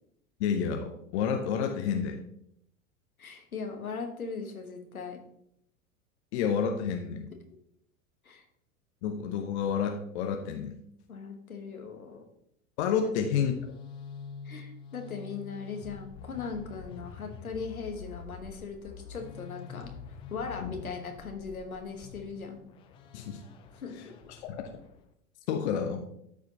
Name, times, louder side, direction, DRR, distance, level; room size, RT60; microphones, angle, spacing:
voice 1, 0.4-2.2 6.3-7.3 9.0-10.8 12.8-13.5 20.6-20.7 23.1-23.4 24.4-24.6 25.5-26.0, left 7 dB, 50° left, 4 dB, 1.0 m, -29 dB
voice 2, 3.2-5.2 8.2-8.4 11.1-12.2 13.0-13.1 14.4-19.9 20.3-22.6 23.7-24.1, left 5 dB, 80° left, 4 dB, 1.3 m, -39 dB
sound 1, 13.2-25.1, left 6 dB, 15° left, 0.3 m, -46 dB
13.0 x 4.8 x 2.8 m, 0.74 s
figure-of-eight pair, 85°, 42 cm